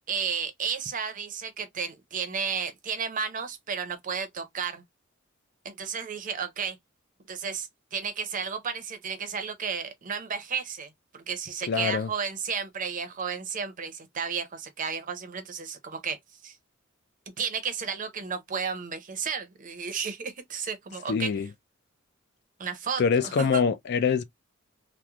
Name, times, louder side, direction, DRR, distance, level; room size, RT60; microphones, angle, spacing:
voice 1, 0.1-4.8 5.6-6.8 7.3-16.2 16.4-16.6 17.4-21.3 22.6-23.6, right 6 dB, 40° right, 0.6 m, -33 dB
voice 2, 11.7-12.1 21.1-21.5 23.0-24.2, left 6 dB, 50° left, 0.3 m, -24 dB
3.0 x 2.0 x 2.3 m
head